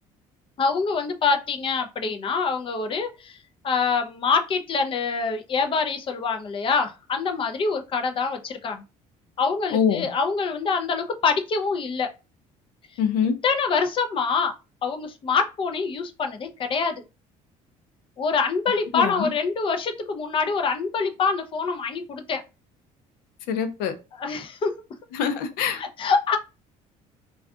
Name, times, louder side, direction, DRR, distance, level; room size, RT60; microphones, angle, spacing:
voice 1, 0.6-3.4 3.6-8.8 9.4-12.1 13.4-14.5 14.8-17.0 18.2-22.4 24.2-24.7 25.8-26.4, left 5 dB, 35° left, 0.5 m, -25 dB
voice 2, 9.7-10.1 13.0-13.3 18.9-19.3 23.5-23.9 25.1-25.8, left 7 dB, 90° left, 0.6 m, -24 dB
2.3 x 2.3 x 3.6 m
cardioid pair, 110°, 15 cm